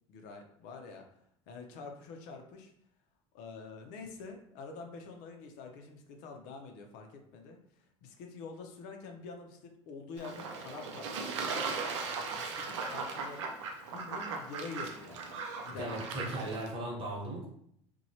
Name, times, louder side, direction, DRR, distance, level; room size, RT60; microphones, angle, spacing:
voice 1, 0.1-1.0 1.5-2.7 3.3-11.8 12.3-13.5 13.9-16.1, left 4 dB, 65° left, 3 dB, 0.5 m, -47 dB
Fowl / Bird / Water, 10.2-16.7, right 4 dB, 90° right, 0.4 m, -38 dB
voice 2, 15.7-17.5, right 1 dB, 40° right, -1 dB, 1.1 m, -37 dB
2.9 x 2.2 x 2.7 m, 0.70 s
supercardioid pair, 90°, 15 cm